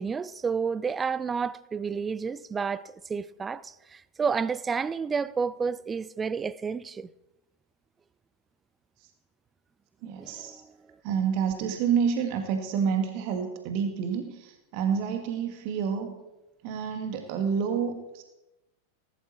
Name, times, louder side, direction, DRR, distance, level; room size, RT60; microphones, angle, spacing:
voice 1, 0.0-7.1 10.2-10.7, right 5 dB, 15° right, 0.5 m, -30 dB
voice 2, 10.0-10.6 11.0-16.2 16.6-18.2, right 7 dB, 45° right, 1.7 m, -28 dB
19.0 x 12.0 x 4.4 m
figure-of-eight pair, 90°, 0 cm